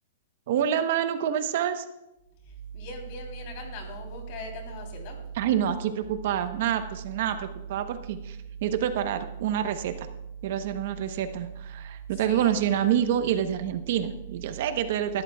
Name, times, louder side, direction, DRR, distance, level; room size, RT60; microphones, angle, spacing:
voice 1, 0.5-1.8 5.3-10.1 10.4-15.2, right 9 dB, 50° right, 9 dB, 0.9 m, -27 dB
voice 2, 2.7-5.2 12.3-12.6, right 1 dB, 40° left, 2 dB, 3.4 m, -38 dB
19.5 x 13.0 x 2.3 m, 0.91 s
hypercardioid pair, 155°, 0 cm